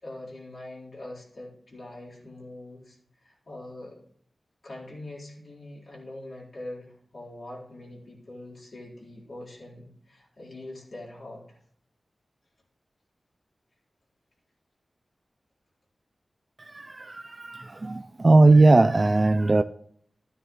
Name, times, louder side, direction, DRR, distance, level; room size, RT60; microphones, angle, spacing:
voice 1, 0.0-4.0 4.6-11.6, left 1 dB, 60° left, -5 dB, 4.2 m, -43 dB
voice 2, 16.6-19.6, right 2 dB, 40° right, 12 dB, 0.4 m, -19 dB
12.5 x 9.9 x 3.1 m, 0.63 s
wide cardioid pair, 70°, 0 cm